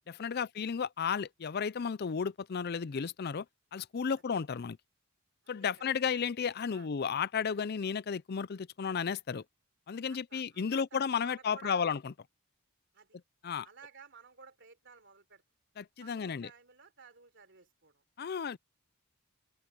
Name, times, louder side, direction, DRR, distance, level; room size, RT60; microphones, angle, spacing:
voice 1, 0.1-3.5 3.7-4.8 5.5-9.4 9.9-12.1 13.4-13.7 15.8-16.5 18.2-18.6, left 6 dB, 45° left, 0.4 m, -33 dB
voice 2, 5.4-6.0 6.7-6.9 10.1-11.9 12.9-13.2 13.6-15.4 16.0-18.0, right 5 dB, 55° right, 3.7 m, -55 dB
open air
head